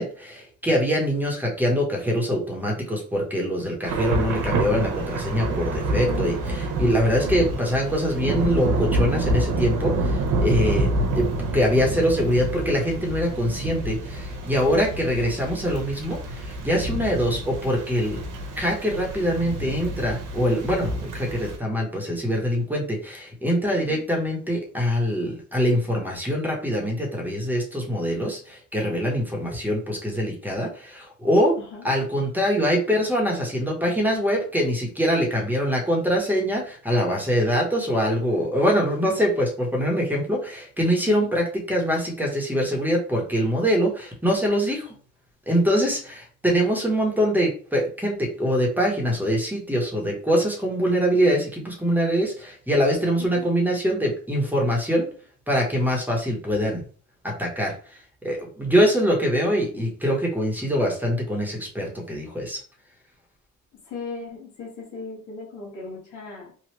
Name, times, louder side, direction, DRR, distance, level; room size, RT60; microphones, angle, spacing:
voice 1, 0.0-11.3 11.5-18.2 18.6-31.5 31.8-44.9 45.5-55.1 55.5-56.8 57.2-62.6, equal, 5° right, -1 dB, 1.1 m, -24 dB
Thunder / Rain, 3.8-21.6, right 2 dB, 85° right, 0.8 m, -28 dB
voice 2, 5.9-6.3 7.2-7.3 10.7-10.8 14.7-14.8 23.9-24.0 29.5-29.6 31.7-31.8 41.0-41.3 53.2-53.5 63.9-66.7, left 4 dB, 80° left, -2 dB, 1.6 m, -38 dB
3.1 x 2.4 x 3.1 m, 0.41 s
cardioid pair, 90°, 30 cm